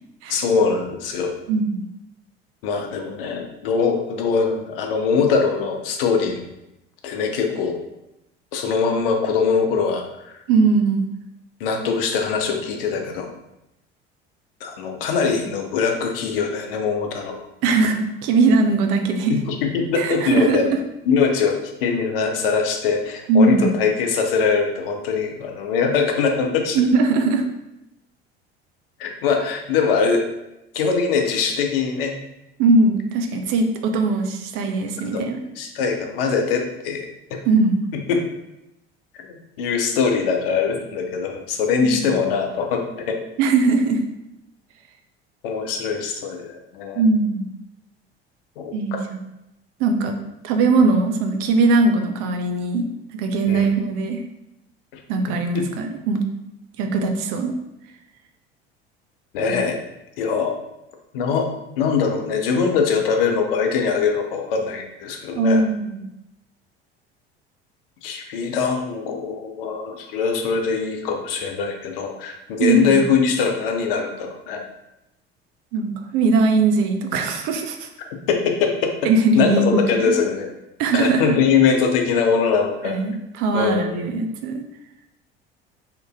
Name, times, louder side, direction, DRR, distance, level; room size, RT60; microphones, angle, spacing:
voice 1, 0.3-1.3 2.6-6.4 7.0-7.8 8.5-10.3 11.6-13.3 14.6-17.4 17.7-17.9 19.3-20.7 21.1-26.8 29.0-30.2 30.7-32.1 35.1-35.3 35.6-37.1 37.3-37.4 38.1-38.2 39.3-43.2 45.4-47.0 48.6-48.7 53.5-53.7 55.3-55.7 59.3-59.8 60.2-60.6 61.1-61.5 61.8-65.6 68.0-74.6 78.3-78.9 79.4-80.5 80.9-83.0 83.5-84.1, left 5 dB, 65° left, 3 dB, 0.5 m, -22 dB
voice 2, 1.5-1.9 10.5-11.1 17.6-19.3 20.0-20.6 23.3-23.7 26.7-27.4 32.6-35.4 37.5-37.8 41.9-42.1 43.4-44.0 46.9-47.5 48.7-49.2 49.8-50.2 50.4-52.9 53.1-54.2 55.1-56.2 56.8-57.5 59.5-59.6 65.4-66.1 72.6-73.0 75.7-77.9 79.0-80.1 80.8-81.4 82.8-84.6, right 3 dB, 50° right, 5 dB, 0.4 m, -20 dB
2.9 x 2.5 x 2.2 m, 0.88 s
figure-of-eight pair, 65°, 31 cm